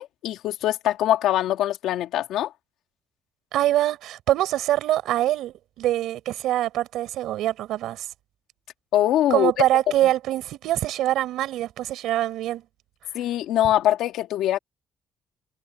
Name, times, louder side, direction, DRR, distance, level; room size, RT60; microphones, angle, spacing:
voice 1, 0.0-2.5 8.9-9.5 13.1-14.6, left 12 dB, 85° left, 2.6 m, -23 dB
voice 2, 3.5-8.1 9.3-12.6, right 13 dB, 85° right, 5.2 m, -24 dB
cardioid pair, 90°, 0 cm